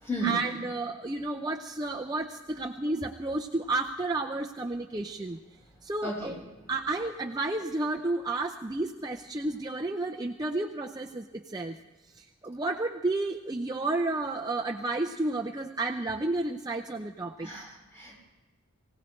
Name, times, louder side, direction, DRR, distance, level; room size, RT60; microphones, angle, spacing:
voice 1, 0.2-5.4 5.8-6.3 6.7-11.8 12.1-17.5, right 2 dB, 20° right, 1 dB, 0.6 m, -31 dB
voice 2, 6.0-6.4 17.4-18.2, right 1 dB, 10° left, -4 dB, 5.9 m, -33 dB
24.5 x 17.5 x 3.2 m, 1.2 s
head